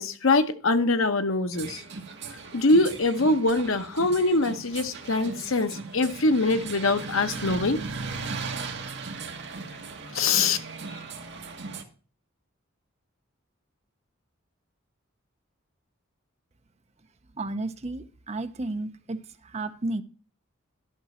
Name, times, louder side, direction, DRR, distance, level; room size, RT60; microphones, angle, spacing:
voice 1, 0.0-1.8 2.5-7.8 10.1-10.6, left 2 dB, 70° left, 0.9 m, -23 dB
sound 1, 1.5-11.8, right 4 dB, 55° right, 1.5 m, -37 dB
voice 2, 17.3-20.0, right 2 dB, 30° right, 0.6 m, -33 dB
12.0 x 6.0 x 4.2 m
head